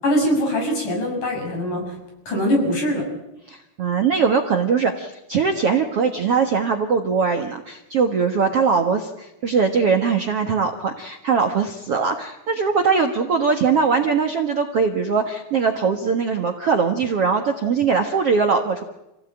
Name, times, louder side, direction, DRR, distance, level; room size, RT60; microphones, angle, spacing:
voice 1, 0.0-1.8 2.3-3.1, equal, 55° left, 2 dB, 8.6 m, -22 dB
voice 2, 3.5-18.8, right 5 dB, 50° right, 4 dB, 1.9 m, -21 dB
29.0 x 17.0 x 9.0 m, 0.92 s
omnidirectional pair, 4.5 m